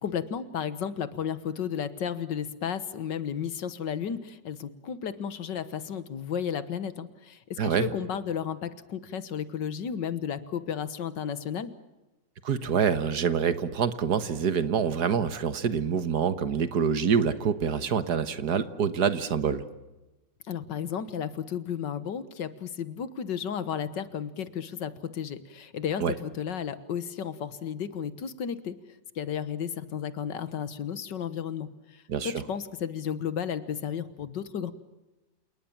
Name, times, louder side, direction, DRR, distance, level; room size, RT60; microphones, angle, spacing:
voice 1, 0.0-11.7 20.5-28.8 29.2-34.7, left 8 dB, 75° left, 14 dB, 1.9 m, -33 dB
voice 2, 7.6-7.9 12.4-19.6 26.0-26.1 32.1-32.4, right 7 dB, 65° right, 12 dB, 1.7 m, -26 dB
28.0 x 19.5 x 7.2 m, 1.1 s
omnidirectional pair, 1.9 m